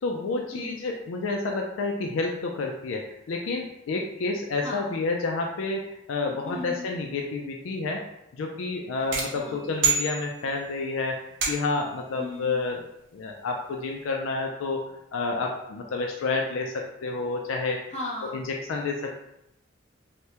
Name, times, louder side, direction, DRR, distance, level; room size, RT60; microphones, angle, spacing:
voice 1, 0.0-8.0 8.3-12.9 13.1-14.8 15.1-17.8 18.3-19.1, left 3 dB, 80° left, 1 dB, 0.4 m, -29 dB
voice 2, 0.5-0.9 4.6-5.0 6.4-6.9 9.0-9.7 12.2-12.6 17.9-18.4, left 1 dB, 35° left, -4 dB, 0.8 m, -37 dB
sound 1, 9.1-10.7 11.4-11.9, right 5 dB, 70° right, 0.8 m, -28 dB
3.4 x 2.1 x 2.8 m, 0.81 s
head